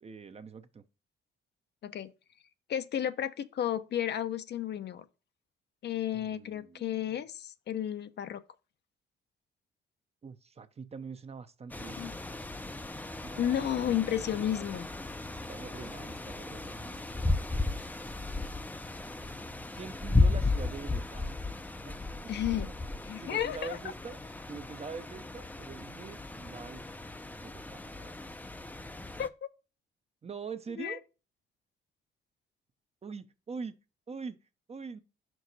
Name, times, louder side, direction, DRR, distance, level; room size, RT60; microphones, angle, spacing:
voice 1, 0.0-0.8 6.1-7.2 10.2-12.2 13.2-14.8 15.5-17.2 19.7-21.3 21.9-22.0 22.7-22.8 23.2-24.2 24.5-26.8 27.4-28.2 30.2-31.0 33.0-33.7 34.1-34.4 34.7-35.0, right 5 dB, 30° right, 0.7 m, -44 dB
voice 2, 2.7-5.0 5.8-8.4 12.0-12.1 13.4-14.9 22.3-22.7 23.0-23.8 29.2-29.5 30.8-31.0, left 10 dB, 60° left, 0.7 m, -32 dB
sound 1, 11.7-29.3, left 3 dB, 10° left, 0.5 m, -35 dB
5.7 x 4.6 x 4.0 m
cardioid pair, 90°, 20 cm